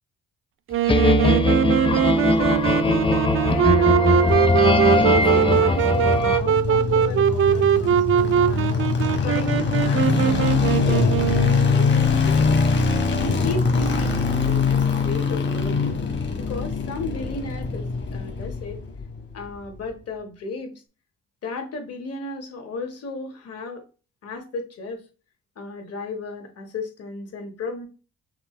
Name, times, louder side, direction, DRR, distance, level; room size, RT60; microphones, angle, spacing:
Wind instrument woodwind instrument, 0.7-11.8, right 9 dB, 45° right, 0.4 m, -21 dB
sound 1, 0.9-6.4, left 2 dB, 15° left, 0.7 m, -20 dB
voice 1, 2.1-3.0 3.4-8.8 9.2-12.6 13.1-15.9 16.4-18.8 19.3-20.7 21.4-23.8 24.2-25.0 25.5-27.9, left 3 dB, 55° left, 4 dB, 1.6 m, -34 dB
sound 2, 4.0-19.2 19.5-19.6, left 4 dB, 40° left, 1.3 m, -23 dB
5.9 x 2.3 x 3.3 m, 0.34 s
cardioid pair, 90°, 30 cm